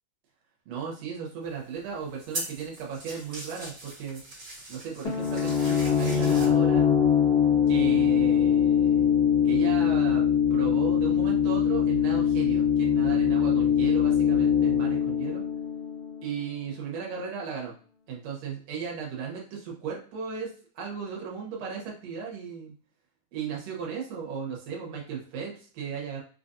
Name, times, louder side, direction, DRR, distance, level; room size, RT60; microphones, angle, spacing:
voice 1, 0.7-4.2 4.7-6.9 7.7-9.1 9.4-10.2 10.5-15.5 16.2-17.7 18.1-22.7 23.3-26.2, right 6 dB, 65° right, -2 dB, 1.8 m, -36 dB
sound 1, 1.4-6.5, right 2 dB, 40° right, 1.4 m, -40 dB
sound 2, 5.0-16.6, left 8 dB, 75° left, 0.9 m, -23 dB
5.0 x 2.5 x 2.6 m, 0.41 s
omnidirectional pair, 3.8 m